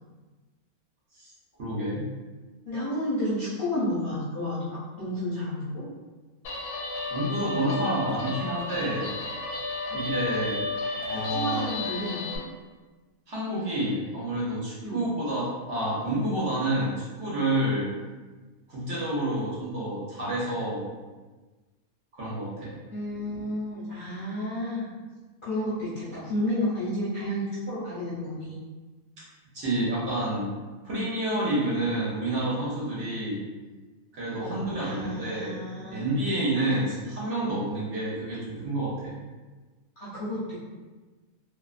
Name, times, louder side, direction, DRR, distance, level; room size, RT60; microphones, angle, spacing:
voice 1, 1.6-2.0 7.1-9.1 9.9-10.6 11.0-11.6 13.3-17.9 18.7-20.9 22.1-22.7 29.5-30.5 30.8-33.4 34.1-38.9, right 1 dB, 60° right, -7 dB, 1.0 m, -29 dB
voice 2, 2.7-5.9 9.9-10.0 11.1-12.4 14.8-15.1 22.9-24.9 25.4-28.6 34.4-36.1 36.6-36.7 40.0-40.5, left 1 dB, 45° left, -11 dB, 0.7 m, -31 dB
Guitar, 6.4-12.4, left 3 dB, 90° left, 1.1 m, -32 dB
2.5 x 2.3 x 2.4 m, 1.3 s
omnidirectional pair, 1.5 m